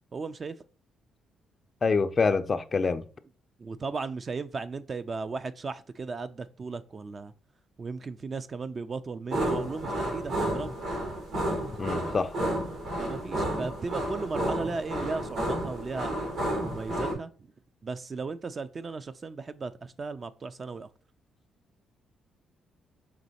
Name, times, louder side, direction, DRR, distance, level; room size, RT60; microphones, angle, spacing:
voice 1, 0.1-0.6 3.6-7.3 7.8-10.7 13.0-16.2 16.6-17.3 17.8-20.9, right 4 dB, 40° right, 0.3 m, -36 dB
voice 2, 1.8-3.0 11.8-12.3, left 4 dB, 40° left, 0.3 m, -26 dB
sound 1, 9.3-17.1, right 1 dB, 80° right, 2.1 m, -31 dB
5.1 x 3.0 x 2.8 m
cardioid pair, 70°, 0 cm